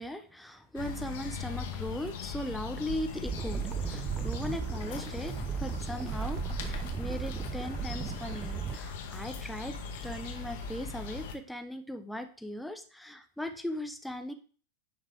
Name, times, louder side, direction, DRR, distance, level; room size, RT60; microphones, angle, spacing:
voice 1, 0.0-9.8 10.0-14.3, left 1 dB, ahead, 7 dB, 0.8 m, -38 dB
sound 1, 0.7-11.3, left 5 dB, 55° left, 1.0 m, -40 dB
sound 2, 3.2-8.8, right 7 dB, 20° right, 0.3 m, -36 dB
sound 3, 3.7-3.8 4.1-5.3 5.7-5.9 6.1-7.3 7.7-7.8 8.1-9.3 9.7-9.9 10.1-11.2, right 8 dB, 60° right, 1.0 m, -54 dB
9.9 x 3.7 x 3.3 m, 0.41 s
figure-of-eight pair, 90°, 0 cm